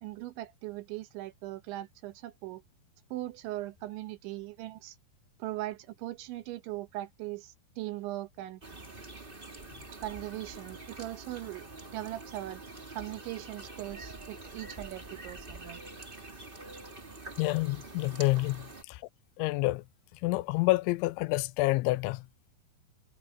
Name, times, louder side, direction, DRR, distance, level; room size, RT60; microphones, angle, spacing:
voice 1, 0.0-2.6 3.1-5.0 5.4-8.6 10.0-11.7 11.9-12.6 12.9-15.8 16.7-16.8, right 16 dB, 85° right, 3.5 m, -39 dB
sound 1, 8.6-18.8, right 2 dB, 20° right, 1.5 m, -46 dB
voice 2, 17.4-19.0 19.4-19.8 20.2-22.3, left 21 dB, 90° left, 2.9 m, -28 dB
omnidirectional pair, 5.3 m